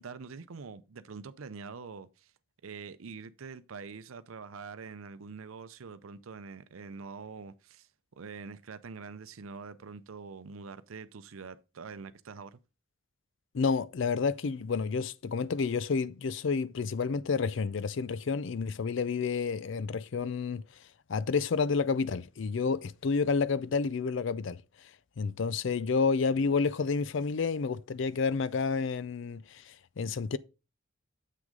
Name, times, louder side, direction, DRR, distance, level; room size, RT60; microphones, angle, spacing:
voice 1, 0.0-2.3 2.6-12.6, right 5 dB, 90° right, 0.6 m, -45 dB
voice 2, 13.5-20.6 21.1-24.6 25.2-30.4, left 5 dB, 65° left, 0.4 m, -30 dB
7.6 x 6.2 x 3.8 m
head